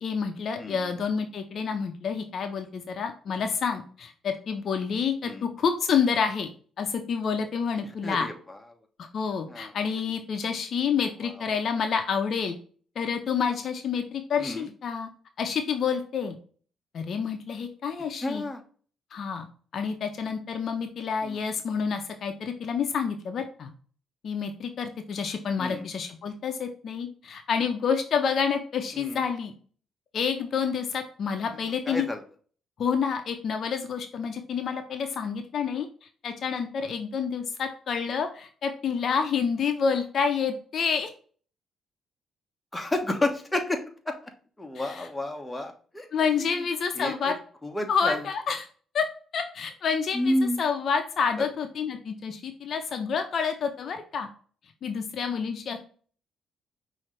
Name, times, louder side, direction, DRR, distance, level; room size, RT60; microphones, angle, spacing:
voice 1, 0.0-6.5 6.8-8.3 9.0-12.6 13.0-15.1 15.4-16.4 16.9-18.4 19.1-19.5 19.7-23.7 24.2-29.5 30.1-32.1 32.8-35.9 36.2-41.1 44.7-45.1 46.1-47.3 47.9-48.7 48.9-49.1 49.3-54.3 54.8-55.8, left 6 dB, 60° left, 6 dB, 0.7 m, -28 dB
voice 2, 0.6-1.0 5.2-5.5 8.0-8.6 9.5-9.7 11.2-11.3 14.4-14.7 18.2-18.6 21.2-21.4 25.6-25.9 28.9-29.2 31.5-32.2 42.7-44.3 44.6-46.7 46.9-47.3 47.6-48.2 50.1-50.6 51.4-51.5, left 1 dB, 15° left, 3 dB, 1.1 m, -31 dB
5.7 x 2.8 x 3.2 m, 0.42 s
cardioid pair, 90°, 0 cm